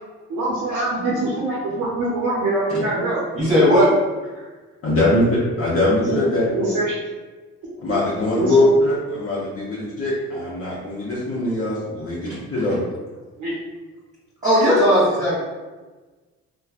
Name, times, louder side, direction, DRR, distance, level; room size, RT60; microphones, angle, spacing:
voice 1, 0.3-3.2 6.1-6.2 6.5-6.9 8.4-8.7 13.4-13.6, right 2 dB, 85° right, -5 dB, 0.7 m, -23 dB
voice 2, 3.3-3.9 12.2-12.3 14.4-15.4, equal, 25° right, -11 dB, 1.1 m, -16 dB
voice 3, 4.8-6.5 7.8-12.8, left 1 dB, 50° left, -7 dB, 0.8 m, -21 dB
3.0 x 2.2 x 2.4 m, 1.3 s
cardioid pair, 90°, 30 cm